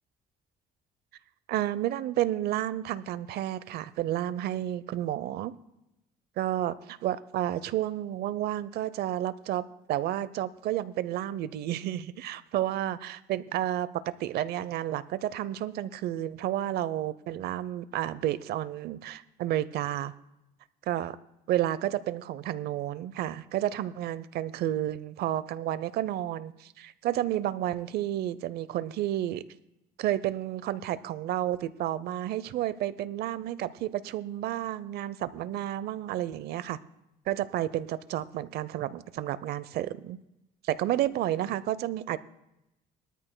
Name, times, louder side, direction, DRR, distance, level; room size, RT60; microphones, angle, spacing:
voice 1, 1.5-5.5 6.4-9.6 9.9-13.9 14.2-20.1 20.9-21.2 21.5-29.4 30.0-36.8 37.3-40.2 40.6-42.2, right 12 dB, 70° right, 16 dB, 0.7 m, -31 dB
21.0 x 13.0 x 2.2 m, 0.90 s
cardioid pair, 110°, 17 cm